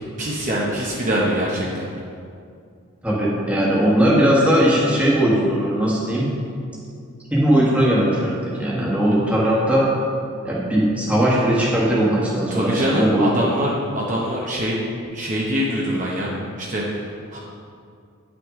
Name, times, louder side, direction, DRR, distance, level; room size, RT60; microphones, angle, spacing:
voice 1, 0.2-1.9 12.5-14.8 15.1-17.4, equal, 35° right, -4 dB, 0.9 m, -24 dB
voice 2, 3.0-6.3 7.3-9.9 10.4-13.3, right 1 dB, 5° right, -6 dB, 1.4 m, -19 dB
9.8 x 6.1 x 3.7 m, 2.3 s
head